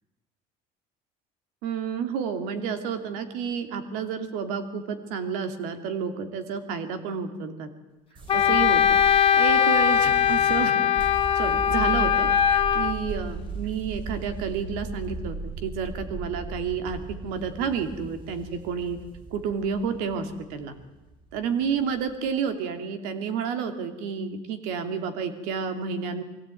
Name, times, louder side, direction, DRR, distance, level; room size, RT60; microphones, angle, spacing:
voice 1, 1.6-7.7 8.3-9.0 9.3-10.9 11.3-19.0 19.3-20.7 21.3-26.2, right 6 dB, 80° right, 8 dB, 2.8 m, -30 dB
sound 1, 8.1-22.3, right 4 dB, 35° right, 6.3 m, -38 dB
Wind instrument woodwind instrument, 8.3-12.9, left 9 dB, 40° left, 1.5 m, -21 dB
22.0 x 16.5 x 9.2 m, 1.1 s
cardioid pair, 125°, 15 cm